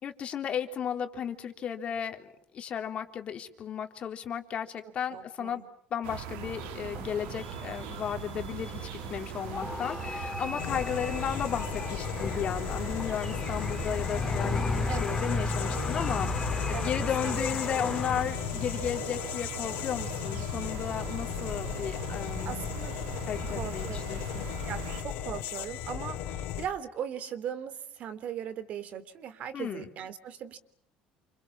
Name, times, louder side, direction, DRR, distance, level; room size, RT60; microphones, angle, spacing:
voice 1, 0.0-5.6 5.9-22.7 23.3-24.5 29.5-29.9, left 8 dB, 45° left, 6 dB, 3.5 m, -34 dB
voice 2, 5.1-5.7 10.7-10.8 14.9-15.2 16.7-16.9 17.2-17.5 18.2-18.3 22.4-22.9 23.5-24.2 24.6-30.6, right 9 dB, 55° right, 13 dB, 3.4 m, -39 dB
sound 1, 6.0-25.0, right 9 dB, 85° right, 2.7 m, -41 dB
sound 2, 6.4-18.3, left 3 dB, 15° left, 2.5 m, -35 dB
sound 3, 10.6-26.7, left 10 dB, 75° left, 3.7 m, -36 dB
29.5 x 27.0 x 7.4 m, 0.64 s
cardioid pair, 120°, 3 cm